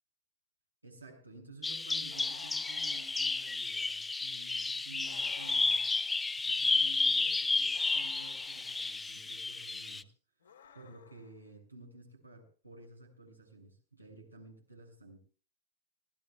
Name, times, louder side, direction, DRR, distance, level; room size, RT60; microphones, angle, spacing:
voice 1, 0.8-5.8 6.4-10.1 10.7-15.2, right 3 dB, 85° right, 0 dB, 6.7 m, -53 dB
Bird vocalization bird call bird song, 1.6-10.0, left 3 dB, 10° left, 0.7 m, -32 dB
sound 1, 2.1-3.8 5.0-6.6 7.7-9.0 10.4-11.5, left 7 dB, 70° left, 3.5 m, -55 dB
26.0 x 18.5 x 2.4 m, 0.39 s
figure-of-eight pair, 90°, 0 cm